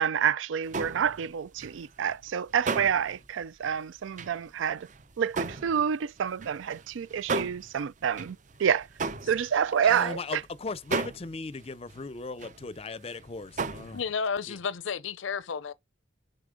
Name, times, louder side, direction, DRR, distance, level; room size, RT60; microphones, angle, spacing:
voice 1, 0.0-4.9 5.2-8.9 9.2-10.4, right 8 dB, 85° right, 0.4 m, -28 dB
sound 1, 0.6-10.4 10.8-12.8 13.1-14.0, right 4 dB, 40° right, 0.6 m, -36 dB
voice 2, 9.8-14.0 14.5-14.6, left 3 dB, 30° left, 0.5 m, -37 dB
voice 3, 13.9-15.7, left 6 dB, 85° left, 0.6 m, -32 dB
6.9 x 3.9 x 5.1 m
head